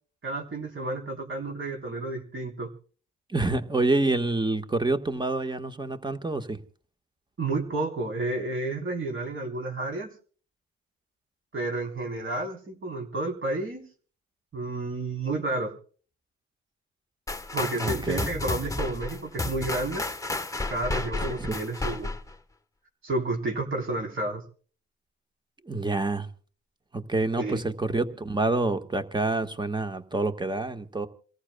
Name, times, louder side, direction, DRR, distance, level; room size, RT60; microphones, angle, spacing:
voice 1, 0.2-2.7 7.4-10.1 11.5-13.9 14.5-15.7 17.5-20.1 20.7-22.1 23.0-24.4 27.4-27.6, right 2 dB, 40° right, 3.9 m, -31 dB
voice 2, 3.3-6.6 17.7-18.3 21.4-21.6 25.6-26.3 26.9-31.1, right 2 dB, 15° right, 1.5 m, -27 dB
sound 1, 17.3-22.4, left 2 dB, 10° left, 1.2 m, -32 dB
28.5 x 14.5 x 2.3 m
cardioid pair, 90°, 30 cm